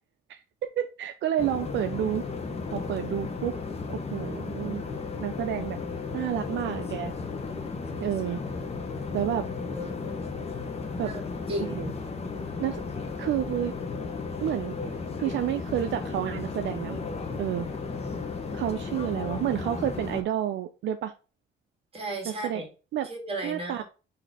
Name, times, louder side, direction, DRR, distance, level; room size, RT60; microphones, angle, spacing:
voice 1, 0.3-2.2 2.7-3.5 3.9-4.8 5.2-5.8 6.1-7.1 8.0-8.4 9.1-9.4 11.0-11.1 11.6-11.9 12.6-12.8 13.2-13.7 14.4-14.8 15.2-17.0 17.4-17.7 18.5-21.1 22.2-22.6 22.9-23.1 23.4-23.8, right 11 dB, 70° right, 7 dB, 0.4 m, -30 dB
sound 1, 1.4-20.2, left 4 dB, 30° left, 0.9 m, -34 dB
voice 2, 9.7-10.1 11.0-11.2 11.5-11.8 21.9-22.7 23.0-23.8, right 1 dB, 30° right, 2 dB, 1.8 m, -34 dB
3.9 x 2.7 x 4.7 m, 0.33 s
cardioid pair, 90°, 20 cm